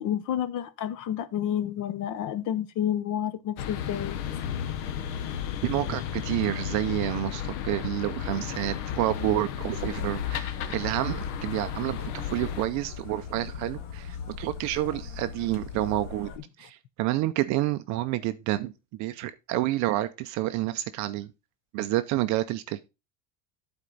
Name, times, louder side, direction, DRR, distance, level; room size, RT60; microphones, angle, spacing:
voice 1, 0.0-4.2, left 10 dB, 40° left, 0.6 m, -30 dB
sound 1, 3.6-12.7, left 9 dB, 75° left, 1.1 m, -33 dB
voice 2, 5.6-16.3 16.6-21.3 21.7-22.8, right 15 dB, 40° right, 0.4 m, -29 dB
sound 2, 9.7-16.4, left 6 dB, 60° left, 1.7 m, -40 dB
11.5 x 4.4 x 3.8 m
cardioid pair, 160°, 48 cm